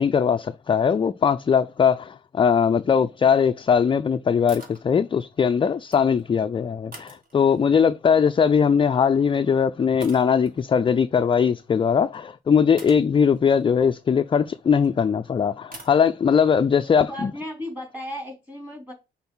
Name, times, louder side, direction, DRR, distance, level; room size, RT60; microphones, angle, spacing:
voice 1, 0.0-17.3, left 7 dB, 25° left, 0.4 m, -20 dB
sound 1, 4.5-4.8 5.7-6.3 6.9-7.8 9.1-9.3 10.0-10.6 12.1-12.2 12.8-14.9 15.7-16.0, right 1 dB, 45° right, 2.4 m, -45 dB
voice 2, 16.8-18.9, left 1 dB, 5° right, 3.4 m, -35 dB
6.0 x 4.0 x 5.5 m
cardioid pair, 90°, 20 cm